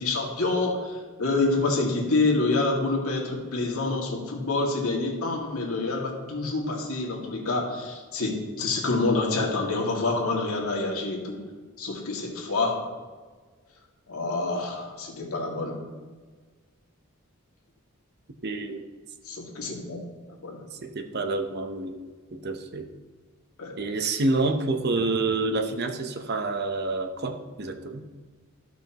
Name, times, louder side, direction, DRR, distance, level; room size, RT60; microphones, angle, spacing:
voice 1, 0.0-11.4 11.8-12.8 14.1-15.8 19.3-20.0 20.4-20.6 23.6-23.7, left 3 dB, 90° left, -1 dB, 2.1 m, -27 dB
voice 2, 18.4-18.9 20.8-22.0 22.3-22.9 23.8-28.1, right 3 dB, 50° right, 6 dB, 0.7 m, -28 dB
14.5 x 6.1 x 2.9 m, 1.4 s
head